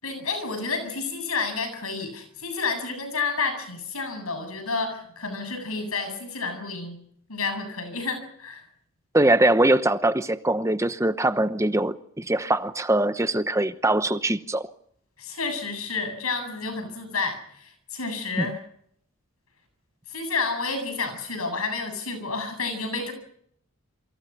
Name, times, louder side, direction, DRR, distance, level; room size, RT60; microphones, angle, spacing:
voice 1, 0.0-7.0 7.3-8.6 15.2-18.6 20.1-23.1, left 4 dB, 85° left, 7.8 m, -30 dB
voice 2, 9.1-14.6 18.4-18.5, right 1 dB, 15° right, 0.9 m, -22 dB
28.5 x 24.5 x 5.8 m
head